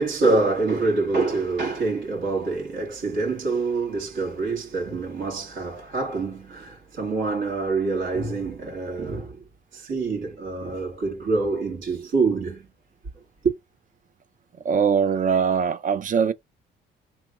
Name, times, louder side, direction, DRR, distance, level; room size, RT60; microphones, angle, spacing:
voice 1, 0.0-9.4 9.7-12.7 13.4-13.5, right 3 dB, 70° right, 2.2 m, -26 dB
voice 2, 14.6-16.3, right 6 dB, 40° right, 0.5 m, -21 dB
3.4 x 3.1 x 3.6 m
cardioid pair, 90°, 20 cm